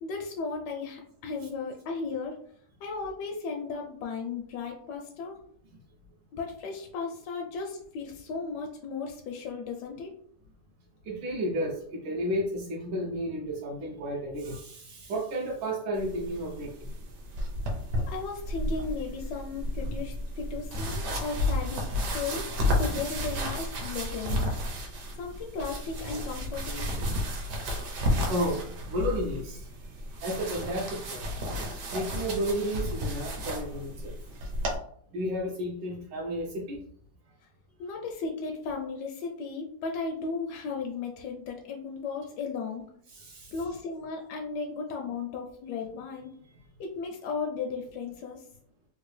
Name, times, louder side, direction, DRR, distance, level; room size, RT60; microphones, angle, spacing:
voice 1, 0.0-2.4 2.8-5.4 6.3-10.1 18.1-21.9 22.1-22.5 22.8-24.6 25.2-26.9 37.8-42.9 43.5-46.4 46.8-48.4, left 4 dB, 75° left, 1 dB, 1.1 m, -35 dB
voice 2, 11.0-16.9 28.3-29.7 30.2-31.2 31.9-34.1 35.1-36.8 43.1-43.5, equal, 80° right, -2 dB, 1.3 m, -32 dB
sound 1, 15.9-34.8, left 1 dB, 65° right, 1.2 m, -32 dB
3.8 x 2.3 x 3.1 m, 0.63 s
omnidirectional pair, 1.9 m